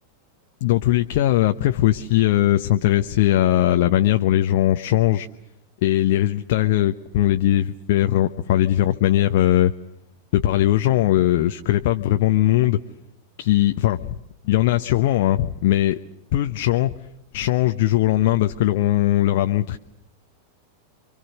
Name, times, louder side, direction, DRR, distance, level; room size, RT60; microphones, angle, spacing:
voice 1, 0.6-5.3 5.8-9.7 10.3-12.8 13.4-14.1 14.5-16.0 16.3-16.9 17.3-19.8, left 13 dB, 50° left, 8 dB, 0.9 m, -19 dB
28.5 x 24.5 x 6.5 m, 0.85 s
figure-of-eight pair, 90°, 0 cm